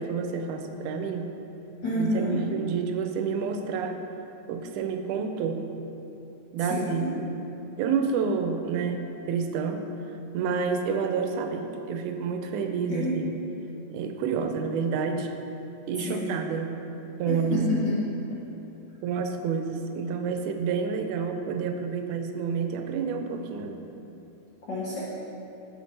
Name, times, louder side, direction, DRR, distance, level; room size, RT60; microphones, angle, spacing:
voice 1, 0.0-1.3 2.0-4.0 4.5-5.7 6.5-7.3 7.8-9.9 10.3-13.3 13.9-15.3 15.9-16.8 17.2-17.6 19.0-23.8, right 6 dB, 85° right, 6 dB, 2.0 m, -29 dB
voice 2, 1.8-2.4 6.6-7.1 12.9-13.2 16.1-16.4 17.3-18.0 18.3-18.4 24.7-25.0, left 1 dB, 75° left, -7 dB, 1.0 m, -28 dB
7.8 x 7.3 x 3.3 m, 3.0 s
omnidirectional pair, 3.4 m